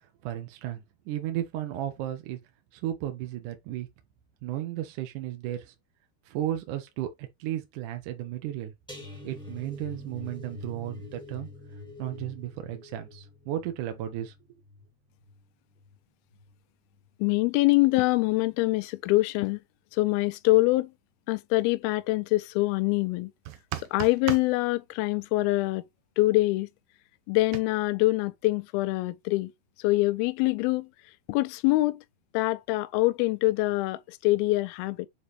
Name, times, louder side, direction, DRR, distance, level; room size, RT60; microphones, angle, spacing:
voice 1, 0.2-2.4 2.7-3.9 4.4-5.7 6.3-8.7 9.2-11.5 12.0-14.3, right 12 dB, 70° right, 2.0 m, -34 dB
sound 1, 8.9-15.9 16.3-16.6 16.9-17.1, left 2 dB, 5° left, 0.3 m, -45 dB
voice 2, 17.2-19.6 19.9-20.9 21.3-23.3 23.8-25.8 26.2-26.7 27.3-29.5 29.8-30.9 31.3-32.0 32.3-35.1, left 20 dB, 80° left, 2.3 m, -24 dB
sound 2, 23.5-24.5 27.5-27.6, right 13 dB, 85° right, 3.2 m, -34 dB
7.2 x 4.1 x 3.2 m
omnidirectional pair, 4.8 m